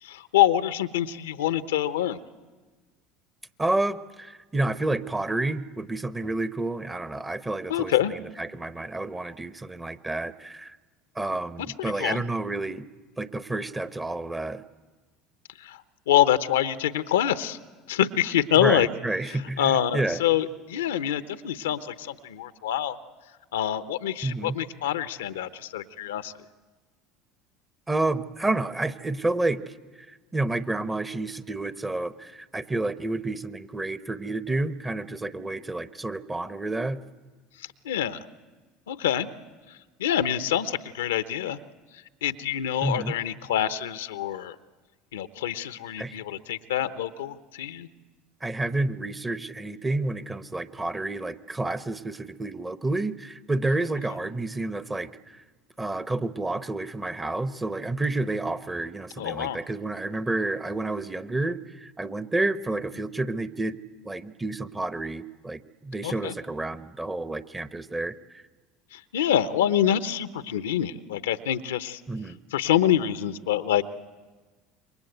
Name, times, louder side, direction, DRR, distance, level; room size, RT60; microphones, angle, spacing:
voice 1, 0.0-2.2 7.7-8.1 11.8-12.2 15.6-15.8 16.1-17.6 17.9-18.9 19.3-23.0 23.5-26.3 37.6-38.2 38.9-39.3 39.7-41.6 42.2-44.5 45.1-47.9 59.2-59.6 66.0-66.3 68.9-72.0 72.5-73.8, left 11 dB, 85° left, 12 dB, 0.9 m, -26 dB
voice 2, 3.6-7.9 8.4-10.8 11.1-12.9 13.2-14.6 18.6-20.2 24.2-24.6 27.9-29.7 30.1-37.0 42.8-43.1 46.0-46.1 48.4-55.4 55.8-63.8 64.0-68.4 72.1-72.4, right 2 dB, 15° right, 12 dB, 1.1 m, -30 dB
27.5 x 23.0 x 8.0 m, 1.3 s
hypercardioid pair, 75°, 0 cm